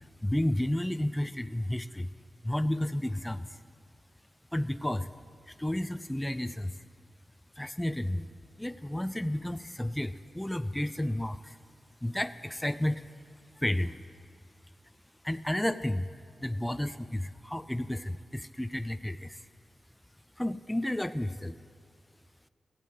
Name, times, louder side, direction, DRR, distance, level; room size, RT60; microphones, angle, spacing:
voice 1, 0.2-2.1 2.4-3.6 4.5-5.1 5.5-6.8 7.6-8.3 8.6-11.6 12.0-13.0 13.6-14.2 15.2-16.1 16.4-19.4 20.4-21.6, left 1 dB, 5° left, 12 dB, 0.4 m, -32 dB
15.0 x 8.3 x 9.1 m, 2.1 s
wide cardioid pair, 115°, 0 cm